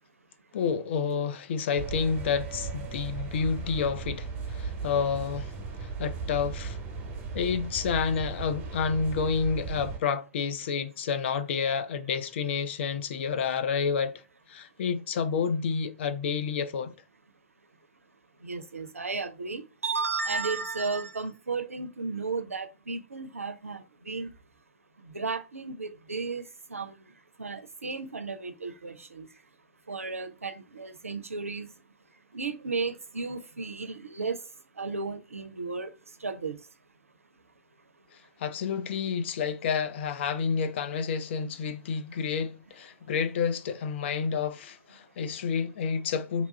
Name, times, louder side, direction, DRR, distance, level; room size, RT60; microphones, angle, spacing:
voice 1, 0.5-5.5 5.8-6.8 7.3-14.2 14.5-16.9 38.4-46.5, left 6 dB, 55° left, 0.5 m, -29 dB
sound 1, 1.8-10.0, right 4 dB, 30° right, 1.1 m, -36 dB
voice 2, 18.4-24.3 25.1-26.5 26.7-26.9 27.4-29.3 29.9-31.7 32.3-34.4 34.8-35.9 36.2-36.6, right 4 dB, 85° right, 0.5 m, -34 dB
2.9 x 2.3 x 3.9 m
figure-of-eight pair, 110°, 7 cm